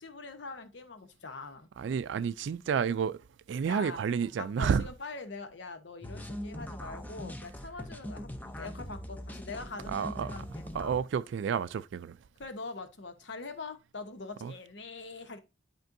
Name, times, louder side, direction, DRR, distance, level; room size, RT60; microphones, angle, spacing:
voice 1, 0.0-1.7 3.7-4.0 4.4-10.6 12.4-15.4, left 3 dB, 70° left, 1.0 m, -43 dB
voice 2, 1.8-4.9 9.9-10.3 10.7-12.2 14.4-14.5, right 7 dB, 70° right, 0.3 m, -30 dB
sound 1, 6.0-11.0, left 1 dB, 10° left, 0.6 m, -41 dB
10.5 x 4.4 x 2.6 m
head